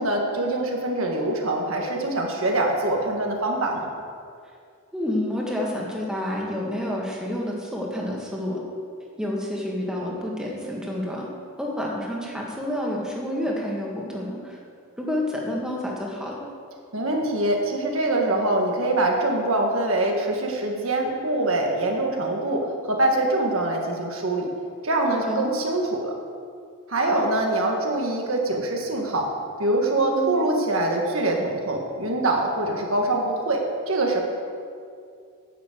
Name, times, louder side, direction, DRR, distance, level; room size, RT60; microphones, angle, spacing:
voice 1, 0.0-3.9 16.9-24.5 24.8-26.1 26.9-29.3 29.6-34.2, right 2 dB, 70° right, 1 dB, 1.7 m, -24 dB
voice 2, 4.9-8.6 9.2-11.3 11.6-14.6 15.0-16.5 25.3-25.5 27.0-27.3 30.0-30.3, left 1 dB, 5° right, -3 dB, 1.8 m, -29 dB
10.0 x 7.1 x 7.9 m, 2.3 s
head